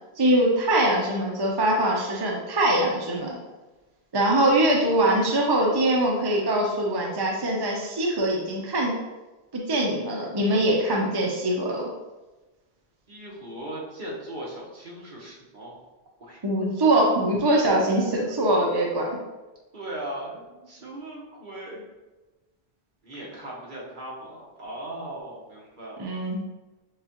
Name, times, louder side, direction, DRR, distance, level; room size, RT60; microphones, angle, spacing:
voice 1, 0.2-3.4 4.1-8.9 9.5-11.8 16.4-19.1 26.0-26.4, right 1 dB, 30° right, -2 dB, 0.5 m, -23 dB
voice 2, 13.1-15.8 16.3-16.4 19.7-21.9 23.0-26.1, right 1 dB, 50° right, -4 dB, 1.2 m, -39 dB
6.5 x 2.4 x 2.9 m, 1.1 s
omnidirectional pair, 1.1 m